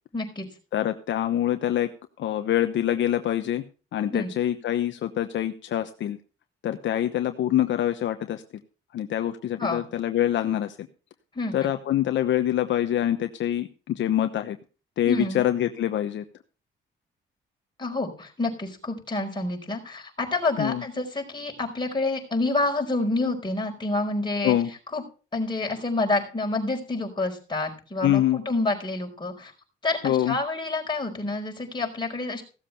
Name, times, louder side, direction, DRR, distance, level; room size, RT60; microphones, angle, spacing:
voice 1, 0.1-0.5 4.1-4.4 9.6-9.8 11.3-11.7 15.1-15.4 17.8-24.6 24.9-25.0 25.3-29.5 29.8-32.4, left 2 dB, 20° left, 1 dB, 4.9 m, -28 dB
voice 2, 0.7-1.9 2.2-3.6 3.9-6.2 6.6-8.4 8.9-10.9 11.5-14.6 15.0-16.2 20.6-20.8 24.4-24.7 28.0-28.4 30.0-30.4, left 12 dB, 70° left, 8 dB, 1.0 m, -25 dB
16.5 x 7.4 x 5.7 m, 0.36 s
cardioid pair, 90°, 20 cm